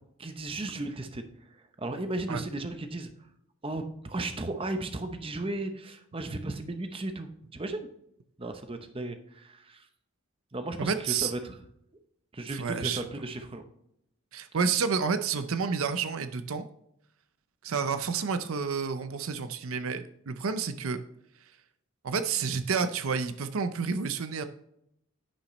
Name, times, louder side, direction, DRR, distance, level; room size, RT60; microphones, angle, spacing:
voice 1, 0.2-1.2 1.5-3.1 3.6-7.9 8.4-9.9 10.5-11.6 12.3-13.6, right 2 dB, 25° right, 7 dB, 0.8 m, -35 dB
voice 2, 10.8-11.3 12.5-13.1 14.3-16.6 17.6-21.0 22.0-24.4, right 5 dB, 75° right, 10 dB, 0.6 m, -30 dB
9.9 x 5.9 x 3.1 m, 0.77 s
head